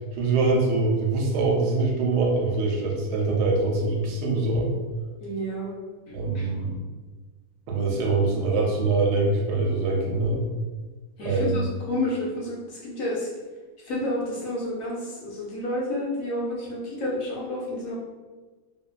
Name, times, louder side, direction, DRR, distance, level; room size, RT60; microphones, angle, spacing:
voice 1, 0.2-4.7 6.1-6.8 7.7-10.4 11.2-11.6, right 3 dB, 80° right, -1 dB, 1.1 m, -24 dB
voice 2, 5.2-5.7 6.1-6.5 11.2-13.3 13.8-18.0, left 1 dB, 70° left, -5 dB, 0.9 m, -30 dB
2.8 x 2.2 x 2.3 m, 1.3 s
omnidirectional pair, 1.7 m